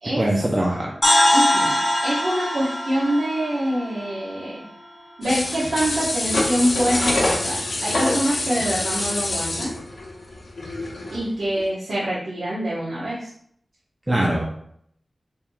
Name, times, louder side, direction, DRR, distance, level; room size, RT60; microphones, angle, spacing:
voice 1, 0.2-0.9 1.2-1.3 14.1-14.5, right 1 dB, 25° right, -2 dB, 0.6 m, -22 dB
sound 1, 1.0-5.0, left 1 dB, 30° left, 1.6 m, -22 dB
voice 2, 1.3-1.8 2.0-4.7 5.2-9.8 11.1-13.3, equal, 90° right, -10 dB, 1.1 m, -25 dB
sound 2, 5.2-11.2 11.6-11.7, left 2 dB, 80° left, 0.8 m, -26 dB
4.3 x 3.6 x 2.3 m, 0.67 s
wide cardioid pair, 80°, 0 cm